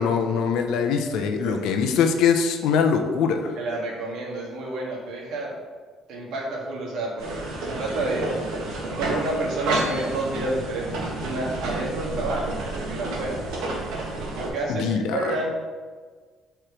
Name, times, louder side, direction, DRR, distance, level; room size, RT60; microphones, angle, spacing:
voice 1, 0.0-3.6 14.7-15.3, left 6 dB, 75° left, 5 dB, 0.7 m, -22 dB
voice 2, 3.6-5.5 6.1-8.3 9.0-12.6 12.8-13.4 14.4-15.5, right 2 dB, 65° right, -2 dB, 1.7 m, -29 dB
sound 1, 7.2-14.5, right 2 dB, 80° right, 1.6 m, -30 dB
5.0 x 4.5 x 6.0 m, 1.5 s
cardioid pair, 160°, 0 cm